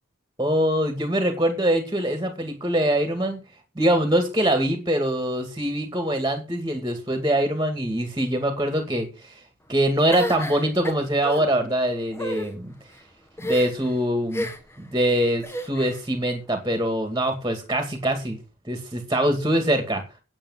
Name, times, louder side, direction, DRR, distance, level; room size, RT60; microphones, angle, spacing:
voice 1, 0.4-3.4 3.8-9.3 9.7-12.7 13.4-14.5 14.8-18.4 18.7-20.0, right 1 dB, 15° right, 6 dB, 2.2 m, -23 dB
sound 1, 10.1-11.4 12.1-12.5 13.4-13.9 14.3-14.8 15.4-16.0, left 1 dB, 10° left, 1.6 m, -31 dB
8.9 x 8.8 x 7.3 m, 0.32 s
head